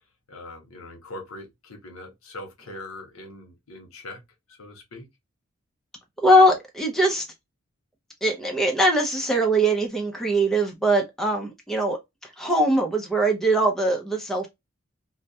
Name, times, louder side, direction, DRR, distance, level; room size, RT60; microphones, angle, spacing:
voice 1, 0.3-4.2 4.5-5.1, left 2 dB, 80° left, 0.8 m, -41 dB
voice 2, 6.2-7.2 8.2-12.0 12.4-14.5, right 1 dB, ahead, 0.5 m, -21 dB
2.2 x 2.1 x 2.6 m
head